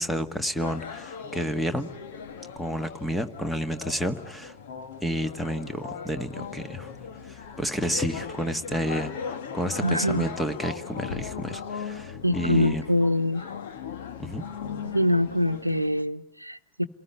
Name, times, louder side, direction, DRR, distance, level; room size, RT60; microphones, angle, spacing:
voice 1, 0.0-1.9 2.6-4.5 5.0-6.9 7.3-12.8 14.2-14.4, equal, 5° left, 10 dB, 1.6 m, -30 dB
sound 1, 0.6-16.0, left 6 dB, 55° left, 2.0 m, -38 dB
voice 2, 9.8-10.3 12.2-13.5 14.8-16.9, left 1 dB, 90° right, 10 dB, 1.0 m, -24 dB
28.5 x 19.0 x 9.6 m, 0.74 s
figure-of-eight pair, 90°, 0 cm